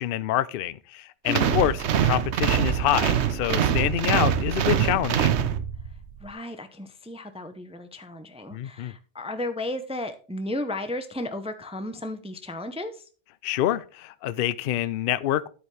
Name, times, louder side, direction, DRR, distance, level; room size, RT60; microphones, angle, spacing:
voice 1, 0.0-1.8 2.0-5.3 8.5-8.9 13.4-15.5, left 13 dB, 60° left, 0.6 m, -26 dB
voice 2, 1.3-1.6 6.2-13.0, left 1 dB, 5° right, 0.6 m, -34 dB
sound 1, 1.3-6.0, right 9 dB, 70° right, 1.0 m, -24 dB
9.6 x 8.2 x 3.3 m
omnidirectional pair, 1.2 m